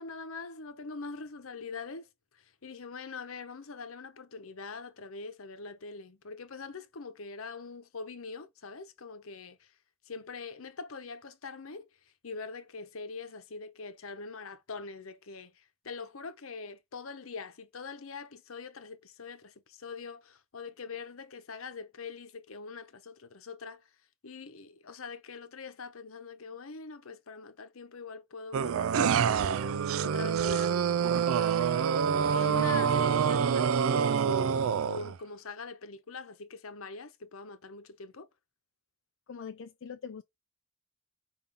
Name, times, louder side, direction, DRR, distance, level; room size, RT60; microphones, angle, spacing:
voice 1, 0.0-2.1 2.3-9.7 10.1-11.9 12.2-23.8 24.2-29.4 29.7-31.1 31.3-34.5 34.8-38.3, left 4 dB, 80° left, 0.9 m, -43 dB
sound 1, 28.5-35.2, right 7 dB, 75° right, 0.4 m, -26 dB
voice 2, 39.3-40.2, left 6 dB, 60° left, 0.4 m, -42 dB
5.4 x 2.7 x 3.5 m
head